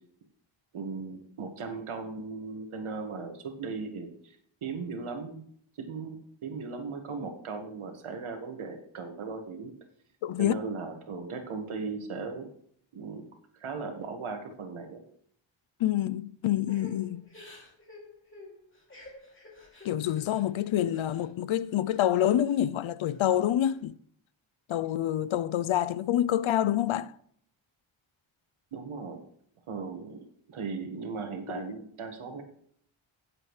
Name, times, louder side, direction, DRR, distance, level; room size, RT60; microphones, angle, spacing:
voice 1, 0.7-4.3 4.6-5.4 5.8-6.2 6.4-9.7 10.4-12.5 12.9-13.2 13.5-15.0 28.7-29.2 29.7-32.4, right 4 dB, 90° right, 1.8 m, -37 dB
voice 2, 10.2-10.5 15.8-17.2 19.8-23.9 24.7-27.1, left 11 dB, 75° left, 0.6 m, -27 dB
Crying sobbing / Breathing, 16.7-21.3 21.7-22.6 23.0-23.8, left 2 dB, 25° left, 2.8 m, -51 dB
16.5 x 7.6 x 3.2 m
wide cardioid pair, 160°, 48 cm